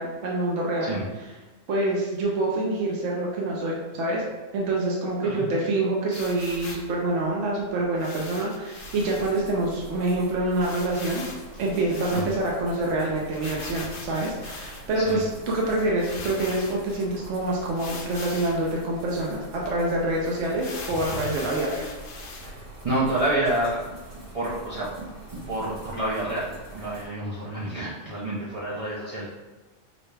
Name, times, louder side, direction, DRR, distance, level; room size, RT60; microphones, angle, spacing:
voice 1, 0.0-1.3 1.7-4.2 4.5-11.2 11.6-21.9, right 2 dB, 70° right, -3 dB, 1.1 m, -26 dB
sound 1, 6.1-6.9 8.0-9.3 9.8-9.9 10.1-10.2 10.6-12.6 13.3-15.0 15.6-15.7 16.0-17.0 17.7-18.6 19.2-19.3 19.6-19.7 20.5-22.5, left 4 dB, 65° left, 0.9 m, -40 dB
sound 2, 8.8-27.1, right 2 dB, 85° right, 2.1 m, -43 dB
voice 2, 22.8-23.9 24.3-25.0 25.5-29.3, right 1 dB, 40° right, -6 dB, 0.5 m, -28 dB
6.4 x 2.2 x 3.3 m, 1.2 s
omnidirectional pair, 1.3 m